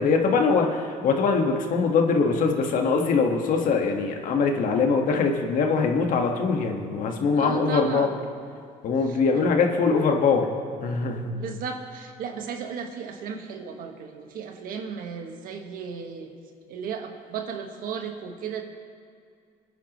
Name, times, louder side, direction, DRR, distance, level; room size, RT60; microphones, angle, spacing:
voice 1, 0.0-8.1 8.8-10.5 10.8-11.3, left 4 dB, 60° left, 3 dB, 1.6 m, -22 dB
voice 2, 7.3-8.1 9.1-9.2 11.3-16.3 16.7-18.6, right 6 dB, 70° right, 4 dB, 1.6 m, -35 dB
25.0 x 10.0 x 3.1 m, 2.3 s
cardioid pair, 115°, 15 cm